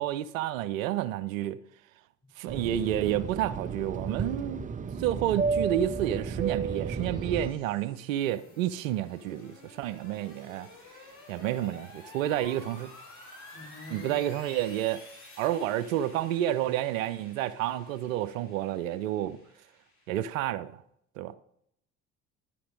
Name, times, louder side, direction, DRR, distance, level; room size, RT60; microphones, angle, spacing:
voice 1, 0.0-1.6 2.4-4.6 5.0-10.7 11.3-12.9 13.9-15.0 15.4-19.4 20.1-20.8 21.2-21.3, right 12 dB, 75° right, 0.5 m, -30 dB
Fixed-wing aircraft airplane, 2.5-7.5, right 5 dB, 20° right, 0.6 m, -33 dB
sound 1, 5.0-20.5, left 2 dB, 50° left, 3.7 m, -52 dB
voice 2, 13.5-14.1, left 3 dB, 30° left, 1.8 m, -45 dB
10.5 x 4.2 x 5.2 m
figure-of-eight pair, 55°, 40 cm